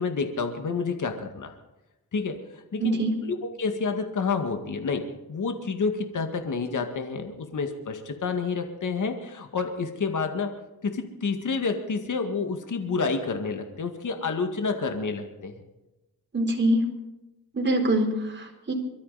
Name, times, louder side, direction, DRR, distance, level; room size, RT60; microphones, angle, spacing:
voice 1, 0.0-1.5 2.1-2.4 2.7-10.5 10.8-15.5, left 4 dB, 50° left, 6 dB, 2.0 m, -29 dB
voice 2, 2.8-3.2 16.3-16.8 17.5-18.7, right 1 dB, 30° right, 1 dB, 4.3 m, -24 dB
24.0 x 13.0 x 4.2 m, 0.99 s
cardioid pair, 90°, 38 cm